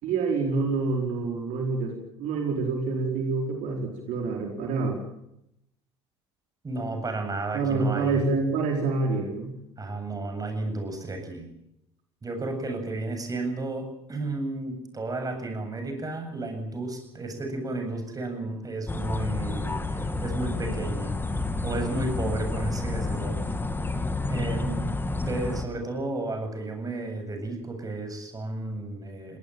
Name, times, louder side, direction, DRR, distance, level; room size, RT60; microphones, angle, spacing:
voice 1, 0.0-5.0 7.5-9.5, right 4 dB, 55° right, 2 dB, 4.8 m, -27 dB
voice 2, 6.6-8.3 9.8-11.5 12.2-21.1 21.6-23.6 24.3-24.9 25.2-29.4, right 2 dB, 25° right, 6 dB, 8.0 m, -33 dB
sound 1, 18.9-25.6, left 2 dB, 15° left, 2.5 m, -30 dB
22.0 x 19.0 x 8.9 m, 0.81 s
hypercardioid pair, 65°, 15 cm